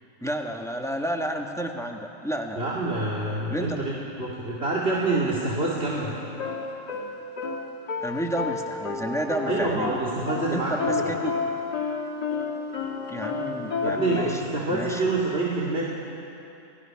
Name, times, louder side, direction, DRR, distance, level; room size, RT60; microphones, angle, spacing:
voice 1, 0.2-2.6 3.5-3.8 8.0-10.0 10.5-11.3 13.1-14.4 14.7-15.0, right 1 dB, ahead, 2 dB, 1.4 m, -31 dB
voice 2, 2.6-6.2 9.5-11.1 13.8-15.8, right 2 dB, 40° right, -6 dB, 2.6 m, -27 dB
sound 1, 6.0-14.4, left 5 dB, 90° left, 3.2 m, -31 dB
28.5 x 18.5 x 5.9 m, 2.8 s
omnidirectional pair, 1.7 m